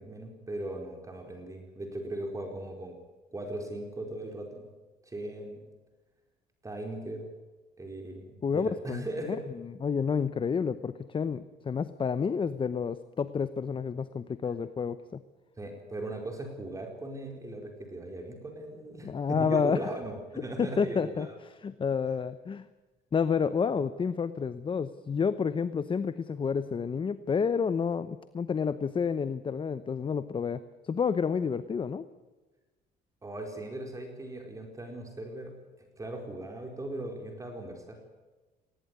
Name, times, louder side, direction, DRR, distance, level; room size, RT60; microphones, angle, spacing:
voice 1, 0.0-3.0 3.3-4.7 5.1-5.7 6.6-7.3 7.8-9.4 15.6-21.3 23.7-23.8 33.2-38.0, right 1 dB, 20° right, 3 dB, 4.4 m, -39 dB
voice 2, 8.4-9.4 9.8-15.2 19.0-19.8 20.6-21.3 21.6-22.6 23.1-32.1, left 6 dB, 30° left, 13 dB, 0.9 m, -30 dB
19.5 x 18.5 x 9.6 m, 1.2 s
cardioid pair, 110°, 17 cm